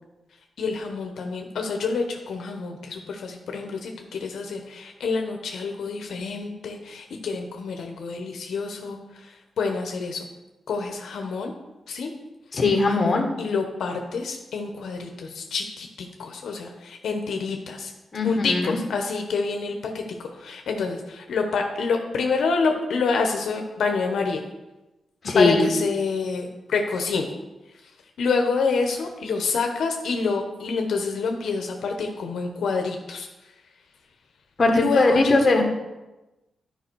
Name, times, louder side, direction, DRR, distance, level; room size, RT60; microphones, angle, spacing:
voice 1, 0.6-10.2 10.7-11.5 11.9-12.1 12.9-17.9 18.2-24.4 25.3-27.3 28.2-33.3 34.7-35.4, left 4 dB, 80° left, 3 dB, 0.8 m, -27 dB
voice 2, 12.5-13.3 18.1-18.8 25.2-25.7 34.6-35.6, left 3 dB, 35° left, 2 dB, 1.5 m, -20 dB
10.5 x 4.8 x 4.5 m, 1.0 s
wide cardioid pair, 115°, 0 cm